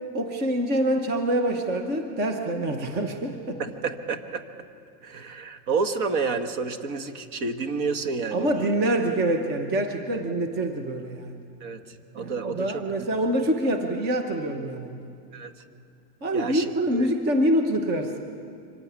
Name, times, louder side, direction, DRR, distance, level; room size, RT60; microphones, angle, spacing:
voice 1, 0.1-3.6 8.3-11.5 12.2-15.1 16.2-18.2, right 1 dB, 20° right, 5 dB, 1.0 m, -26 dB
voice 2, 3.6-4.4 5.0-8.7 10.1-10.2 11.6-11.8 12.1-12.8 15.3-15.5 16.3-17.1, right 4 dB, 45° right, 8 dB, 1.4 m, -30 dB
24.5 x 16.0 x 9.5 m, 2.4 s
supercardioid pair, 165°, 48 cm